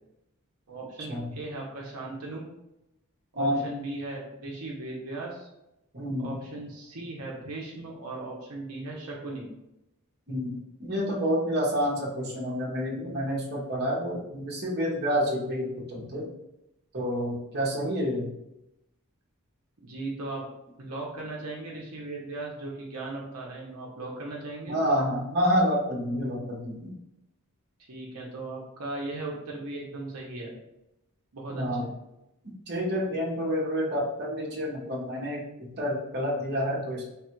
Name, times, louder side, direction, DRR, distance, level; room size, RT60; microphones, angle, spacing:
voice 1, 0.7-2.4 3.3-5.5 6.2-9.5 19.8-20.4 20.8-24.8 27.9-30.5 31.3-31.9, right 2 dB, 75° right, -2 dB, 0.8 m, -37 dB
voice 2, 3.3-3.7 5.9-6.4 10.3-16.3 16.9-18.3 24.7-26.9 31.5-31.9 32.7-37.0, equal, 50° right, -3 dB, 1.0 m, -28 dB
3.4 x 2.4 x 4.4 m, 0.89 s
head